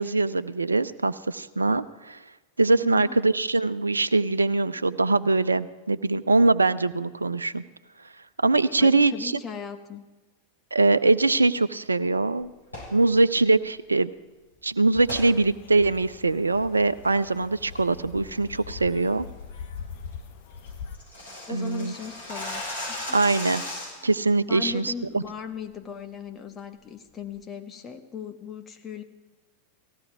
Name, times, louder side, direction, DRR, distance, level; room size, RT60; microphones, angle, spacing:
voice 1, 0.0-2.2 2.6-7.6 8.4-9.3 10.7-12.5 12.9-14.1 14.6-19.3 21.5-21.9 23.1-23.6 24.0-25.2, right 3 dB, 80° right, 15 dB, 0.4 m, -22 dB
voice 2, 2.8-3.1 8.8-10.0 21.5-22.6 22.9-23.0 24.0-24.1 24.5-29.0, left 6 dB, 20° left, 5 dB, 1.4 m, -38 dB
sound 1, 12.6-13.0 15.1-15.3 15.8-15.9 16.4-16.6 17.0-17.4 17.7-18.0 18.3-18.4 18.8-19.1 19.4-19.5 19.8-19.9 20.1-20.2 20.5-24.1, left 1 dB, 90° left, 7.5 m, -36 dB
sound 2, 14.9-21.0, left 6 dB, 50° left, 1.4 m, -42 dB
18.0 x 15.5 x 4.7 m, 1.2 s
figure-of-eight pair, 90°, 0 cm